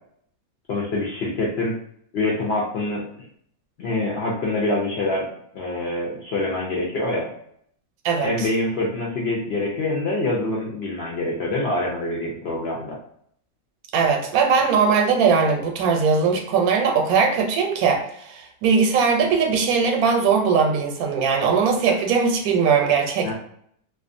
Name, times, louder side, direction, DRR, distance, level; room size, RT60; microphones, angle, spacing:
voice 1, 0.7-1.7 2.1-3.0 3.8-5.3 5.5-7.3 8.2-13.0 23.2-23.3, left 2 dB, 65° left, -4 dB, 0.6 m, -25 dB
voice 2, 8.0-8.5 13.9-23.3, right 5 dB, 85° right, 2 dB, 1.1 m, -20 dB
2.3 x 2.3 x 2.5 m, 0.67 s
omnidirectional pair, 1.5 m